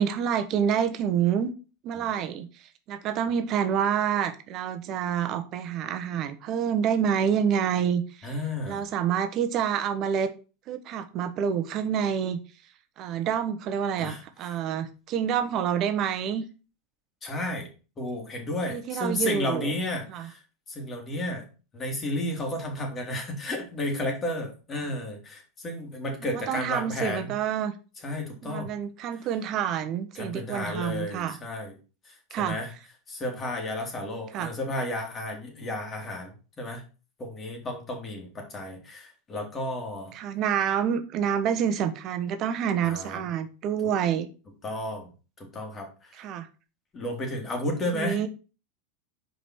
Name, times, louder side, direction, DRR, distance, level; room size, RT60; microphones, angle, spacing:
voice 1, 0.0-1.5 1.8-8.3 8.7-10.3 10.7-12.4 13.0-16.4 18.7-19.7 20.1-20.3 26.2-27.7 28.4-31.4 32.3-32.6 34.3-34.5 40.1-44.3 46.1-46.5 47.9-48.3, right 8 dB, 45° right, 9 dB, 1.1 m, -27 dB
voice 2, 8.2-8.8 14.0-14.2 17.2-17.7 18.0-20.4 20.7-21.5 21.7-27.3 28.0-28.7 30.1-31.7 32.0-32.7 33.1-36.8 37.2-40.1 42.8-43.2 44.6-45.1 45.4-46.1 46.9-48.2, left 1 dB, 25° left, 2 dB, 3.0 m, -32 dB
5.2 x 5.1 x 6.1 m, 0.34 s
hypercardioid pair, 90°, 0 cm